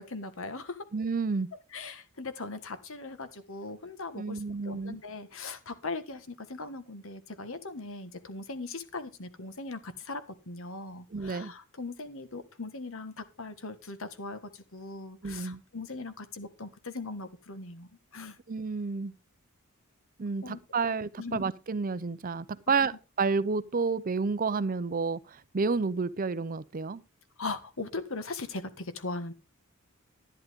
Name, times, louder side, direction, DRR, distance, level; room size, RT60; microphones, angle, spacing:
voice 1, 0.0-0.9 1.7-18.4 20.4-20.6 21.2-21.4 22.7-22.8 27.4-29.3, left 3 dB, 60° left, 1.5 m, -39 dB
voice 2, 0.9-1.5 4.2-5.0 11.1-11.5 15.2-15.6 18.5-19.1 20.2-27.0, right 4 dB, 40° right, 0.6 m, -30 dB
11.5 x 10.5 x 3.6 m
head